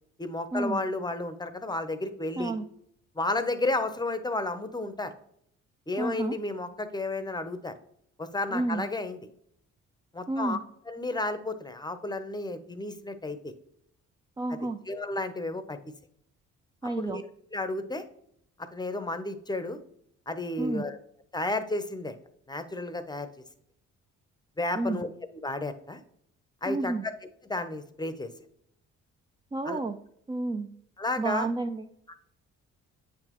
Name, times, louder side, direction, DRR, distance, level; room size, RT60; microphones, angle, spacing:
voice 1, 0.2-2.5 3.2-5.1 5.9-7.7 8.2-9.2 10.1-10.6 10.9-13.5 14.5-15.8 17.0-17.2 17.5-18.0 18.7-19.8 20.3-21.0 21.3-22.1 22.5-23.3 24.6-25.1 25.4-26.0 26.6-27.1 27.5-28.3 29.6-29.8 31.0-31.5 32.1-32.2, left 2 dB, 15° left, 10 dB, 0.7 m, -32 dB
voice 2, 2.4-2.7 6.0-6.4 8.5-8.9 10.3-10.6 14.4-14.8 16.8-17.2 20.6-20.8 24.8-25.0 26.7-27.1 29.5-30.0 30.3-30.7 31.2-31.9, right 2 dB, 15° right, 6 dB, 0.3 m, -30 dB
8.6 x 6.0 x 3.0 m, 0.70 s
cardioid pair, 90°, 30 cm